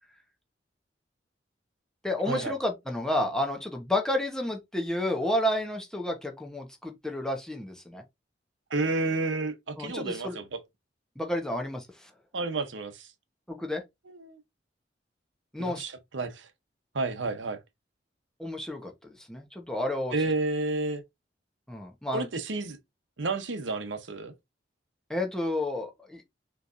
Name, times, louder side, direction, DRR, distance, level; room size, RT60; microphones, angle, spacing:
voice 1, 2.0-8.0 9.8-10.4 11.2-12.1 13.5-13.8 15.5-15.8 18.4-20.1 21.7-22.3 25.1-26.2, left 1 dB, 5° left, 1.0 m, -31 dB
voice 2, 8.7-10.6 12.3-13.1 14.1-14.4 15.6-16.5 16.9-17.6 20.1-21.0 22.1-22.8 23.2-24.3, right 3 dB, 90° right, 0.8 m, -31 dB
6.0 x 3.1 x 2.5 m
head